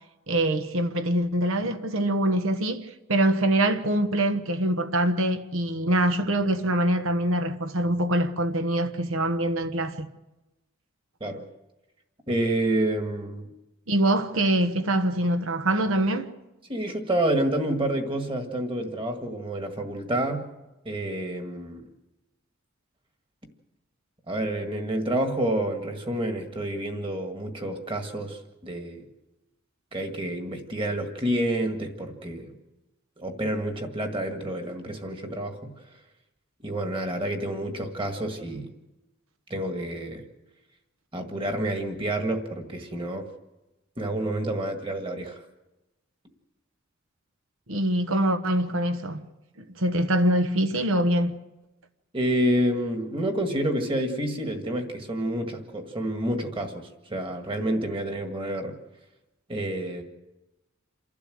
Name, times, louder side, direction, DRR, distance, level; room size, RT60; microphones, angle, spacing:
voice 1, 0.3-10.1 13.9-16.3 47.7-49.2 49.8-51.4, right 1 dB, 80° right, 1.2 m, -24 dB
voice 2, 12.3-13.5 16.7-20.4 20.9-21.8 24.3-29.1 29.9-32.5 33.2-35.7 36.6-38.7 39.5-40.2 41.1-43.3 44.0-45.4 52.1-58.7 59.5-60.0, right 1 dB, 25° right, 1.9 m, -28 dB
28.5 x 12.0 x 7.8 m
head